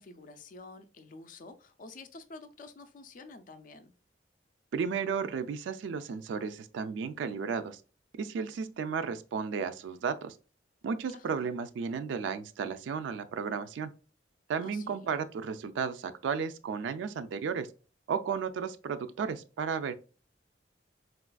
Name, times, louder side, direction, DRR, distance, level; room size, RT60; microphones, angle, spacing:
voice 1, 0.0-3.9 11.1-11.5 14.6-15.1, left 3 dB, 45° left, 0.4 m, -49 dB
voice 2, 4.7-7.8 8.2-10.3 10.8-13.9 14.5-17.7 18.1-19.9, right 6 dB, 80° right, 0.3 m, -33 dB
4.0 x 2.4 x 2.2 m
head